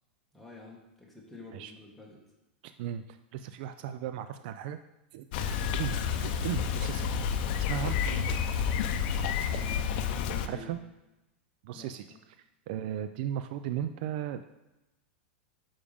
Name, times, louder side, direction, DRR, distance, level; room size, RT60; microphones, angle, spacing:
voice 1, 0.3-2.2 7.7-7.9 9.5-10.7 11.7-12.2, left 3 dB, ahead, -3 dB, 1.7 m, -48 dB
voice 2, 2.6-4.8 5.1-5.3 5.7-7.1 7.7-8.3 10.5-10.8 11.6-12.1 12.7-14.4, right 10 dB, 60° right, 10 dB, 0.4 m, -36 dB
Bicycle, 5.3-10.5, left 7 dB, 60° left, 0.6 m, -30 dB
6.8 x 5.2 x 3.5 m, 0.97 s
hypercardioid pair, 125°, 6 cm